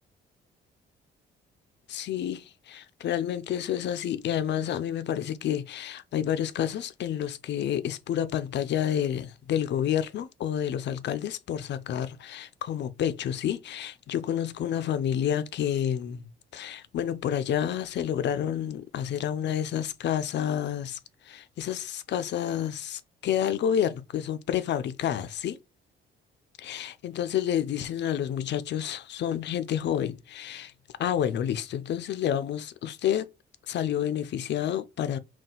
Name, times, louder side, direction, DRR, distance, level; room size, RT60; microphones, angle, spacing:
voice 1, 1.9-16.2 16.5-21.0 21.2-25.6 26.6-30.7 31.0-33.3 33.7-35.2, left 10 dB, 60° left, 0.5 m, -29 dB
4.2 x 2.3 x 3.8 m
cardioid pair, 90°, 20 cm